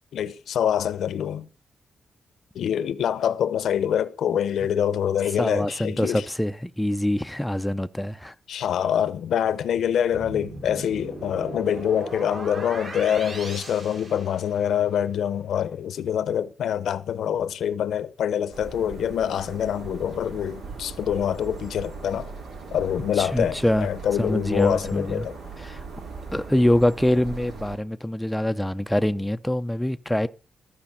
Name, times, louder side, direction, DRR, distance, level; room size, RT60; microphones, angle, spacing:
voice 1, 0.1-1.5 2.5-6.2 8.5-22.3 22.7-25.4, left 9 dB, 85° left, 0.8 m, -25 dB
voice 2, 5.4-8.3 23.2-23.9 24.2-25.3 25.6-25.8 26.3-30.3, left 1 dB, 5° left, 0.6 m, -24 dB
sound 1, 10.1-14.9, right 2 dB, 50° right, 4.9 m, -38 dB
sound 2, 18.5-27.8, right 4 dB, 80° right, 4.4 m, -39 dB
14.5 x 5.1 x 7.1 m
cardioid pair, 105°, 0 cm